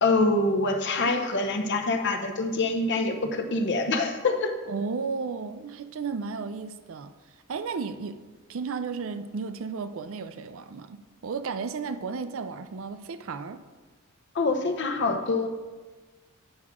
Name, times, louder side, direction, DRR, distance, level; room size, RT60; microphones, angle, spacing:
voice 1, 0.0-4.5 14.3-15.5, left 3 dB, 55° left, 0.8 m, -25 dB
voice 2, 4.7-7.1 7.5-8.2 8.5-13.6, right 5 dB, 65° right, 0.5 m, -34 dB
9.5 x 6.0 x 3.6 m
head